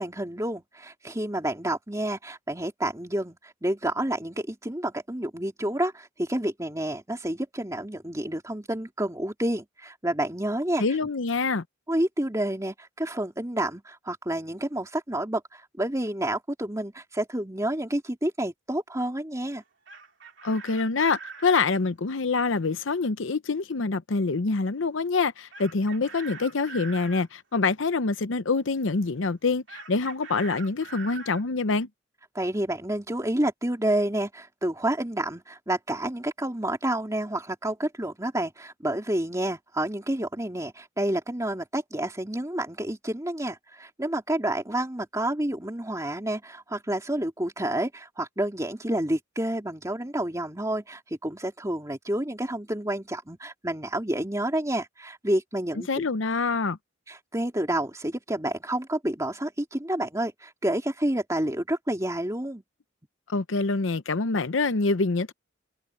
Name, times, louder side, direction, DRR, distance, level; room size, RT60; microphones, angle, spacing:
voice 1, 0.0-10.8 11.9-19.6 32.3-56.1 57.1-62.6, right 1 dB, 15° right, 2.8 m, -29 dB
voice 2, 10.8-11.6 20.4-31.9 55.9-56.8 63.3-65.3, left 4 dB, 75° left, 0.8 m, -26 dB
Chicken rooster, 19.6-21.7 25.5-27.3 29.7-31.4, right 4 dB, 65° right, 3.1 m, -43 dB
head